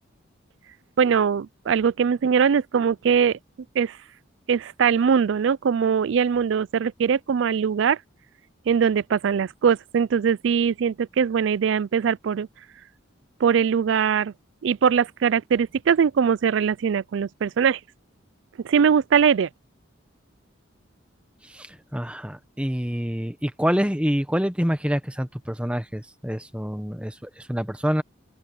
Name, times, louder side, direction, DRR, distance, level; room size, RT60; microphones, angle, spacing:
voice 1, 1.0-3.4 3.8-4.0 4.5-8.0 8.7-12.5 13.4-14.3 14.6-17.8 18.6-19.5, right 7 dB, 70° right, 0.4 m, -21 dB
voice 2, 21.4-28.0, equal, 5° right, 1.3 m, -27 dB
head